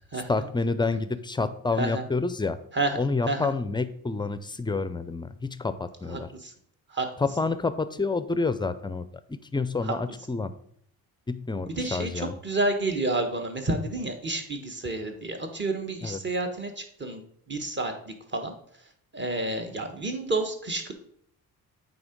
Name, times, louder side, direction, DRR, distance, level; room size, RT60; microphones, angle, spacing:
voice 1, 0.3-2.6 3.0-6.3 7.2-10.5 11.3-12.4 16.0-16.2, left 3 dB, 15° left, 13 dB, 0.4 m, -28 dB
voice 2, 6.1-6.5 6.9-7.1 9.8-9.9 11.7-17.2 17.5-18.5 19.1-20.9, right 2 dB, 30° right, 5 dB, 1.4 m, -30 dB
8.6 x 3.9 x 5.2 m, 0.64 s
cardioid pair, 100°, 36 cm